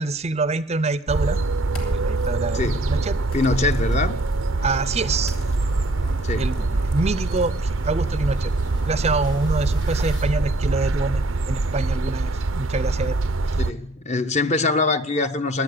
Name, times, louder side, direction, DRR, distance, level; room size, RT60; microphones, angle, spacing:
voice 1, 0.0-1.4 1.8-3.2 4.6-5.4 6.4-8.5 8.8-13.2 13.5-13.6, right 3 dB, 35° right, 0.6 m, -26 dB
sound 1, 1.1-13.7, right 3 dB, 90° right, 0.8 m, -24 dB
sound 2, 1.6-2.3 3.3-4.4 5.2-7.5, left 1 dB, 80° left, 3.3 m, -43 dB
voice 2, 2.5-2.9 3.3-4.2 6.2-6.5 13.7-15.6, left 3 dB, 35° left, 0.9 m, -23 dB
sound 3, 3.7-10.3, left 2 dB, 60° left, 3.8 m, -47 dB
16.5 x 11.0 x 6.6 m
head